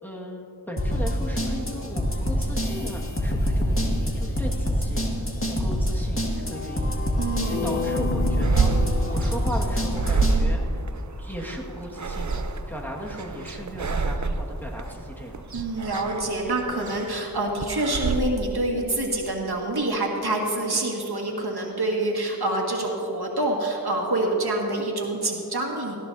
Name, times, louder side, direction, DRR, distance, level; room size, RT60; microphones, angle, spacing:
voice 1, 0.0-5.0 5.5-7.0 7.4-10.6 11.2-15.4, equal, 5° left, -3 dB, 1.8 m, -37 dB
sound 1, 0.8-10.4, equal, 35° left, 1.9 m, -26 dB
voice 2, 7.2-8.3 15.5-26.0, right 2 dB, 85° right, -1 dB, 1.9 m, -27 dB
sound 2, 7.5-10.5, left 4 dB, 70° left, 1.1 m, -33 dB
sound 3, 8.4-18.2, right 3 dB, 50° right, 0.7 m, -27 dB
18.0 x 14.5 x 2.7 m, 2.8 s
wide cardioid pair, 50°, 38 cm